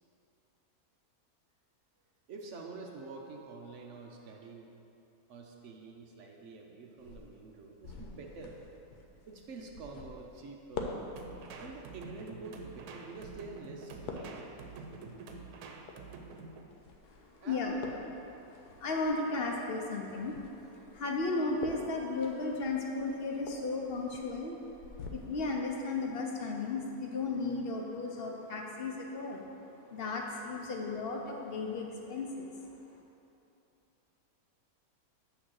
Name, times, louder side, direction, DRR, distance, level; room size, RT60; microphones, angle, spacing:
voice 1, 2.3-4.7 5.3-8.6 9.3-11.0 11.6-14.6 17.4-17.9, right 3 dB, 65° right, 1 dB, 0.8 m, -47 dB
sound 1, 7.0-25.1, left 4 dB, 85° left, 1.2 m, -48 dB
sound 2, 11.2-16.6, right 4 dB, 85° right, 1.1 m, -47 dB
voice 2, 17.0-17.7 18.4-24.7 25.1-32.8, left 3 dB, 55° left, 0 dB, 0.6 m, -35 dB
8.5 x 3.0 x 6.2 m, 2.9 s
omnidirectional pair, 1.6 m